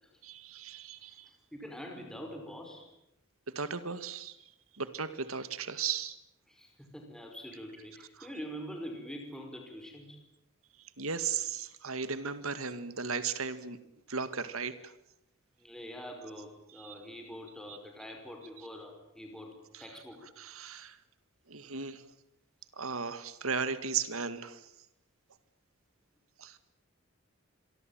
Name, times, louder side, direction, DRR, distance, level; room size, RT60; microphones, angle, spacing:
voice 1, 0.2-1.3 3.6-4.4 4.7-6.2 8.2-8.3 11.0-13.8 14.1-14.9 16.8-16.9 17.7-17.8 19.7-19.8 20.4-21.0 21.5-22.0 22.7-24.7 26.4-26.6, right 5 dB, 85° right, 12 dB, 2.0 m, -36 dB
voice 2, 1.1-2.9 6.5-10.2 15.6-19.5 19.8-20.2, equal, 5° left, 2 dB, 5.5 m, -45 dB
27.5 x 23.5 x 9.1 m, 0.83 s
head